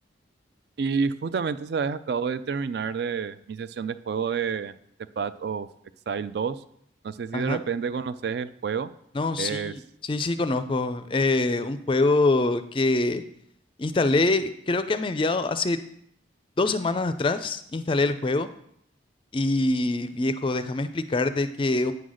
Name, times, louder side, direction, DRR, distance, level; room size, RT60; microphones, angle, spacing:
voice 1, 0.8-4.7 5.2-5.7 6.1-6.6 7.0-8.9 9.4-9.7, right 6 dB, 55° right, 14 dB, 0.3 m, -29 dB
voice 2, 9.1-13.2 13.8-15.8 16.6-18.5 19.3-21.9, left 2 dB, 25° left, 11 dB, 0.4 m, -24 dB
9.1 x 3.9 x 6.3 m, 0.71 s
head